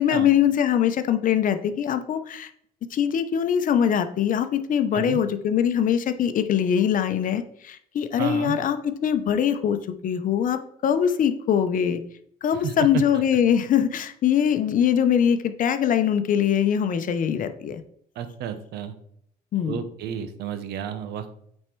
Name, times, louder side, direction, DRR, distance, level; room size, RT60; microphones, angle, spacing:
voice 1, 0.0-2.5 2.9-12.0 12.4-17.8 19.5-19.8, left 9 dB, 50° left, 9 dB, 0.9 m, -22 dB
voice 2, 8.2-8.6 12.5-13.0 18.1-18.9 19.6-21.3, right 8 dB, 75° right, 10 dB, 1.0 m, -31 dB
8.6 x 4.5 x 4.6 m, 0.68 s
cardioid pair, 110°, 17 cm